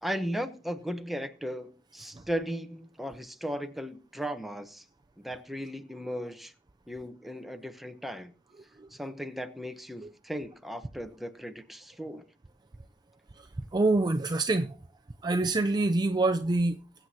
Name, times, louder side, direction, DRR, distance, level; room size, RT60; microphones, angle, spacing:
voice 1, 0.0-4.8 5.2-6.5 6.9-8.3 8.9-12.2, equal, ahead, 0.9 m, -36 dB
voice 2, 13.7-14.8 15.2-16.8, right 2 dB, 25° right, 0.5 m, -26 dB
22.0 x 7.9 x 2.8 m
head